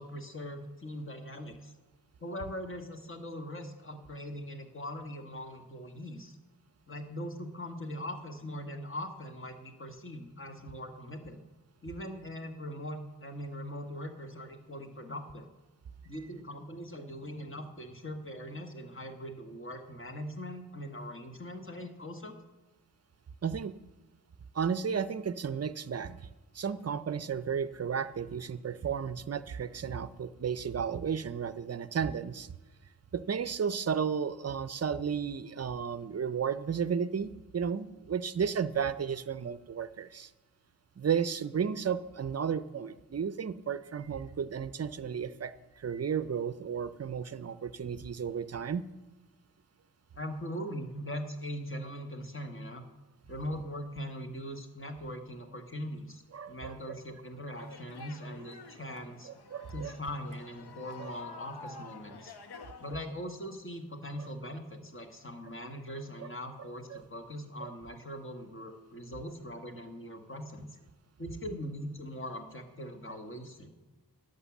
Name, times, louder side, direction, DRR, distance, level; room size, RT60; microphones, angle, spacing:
voice 1, 0.0-1.7 2.2-6.4 6.9-11.4 11.8-15.5 16.0-22.3 50.1-52.8 53.3-59.3 59.7-62.3 62.8-70.7 71.2-73.7, equal, 30° left, 5 dB, 1.5 m, -41 dB
voice 2, 23.4-23.7 24.5-26.2 26.5-32.5 33.1-40.3 41.0-48.8 56.3-57.0 59.2-59.9 61.0-61.1 64.2-64.3 66.2-66.3 66.9-67.0 67.6-67.7, right 7 dB, 40° right, 14 dB, 0.5 m, -33 dB
sound 1, 57.6-63.0, left 4 dB, 80° left, 1.0 m, -49 dB
11.0 x 6.7 x 7.2 m, 1.2 s
wide cardioid pair, 80°, 39 cm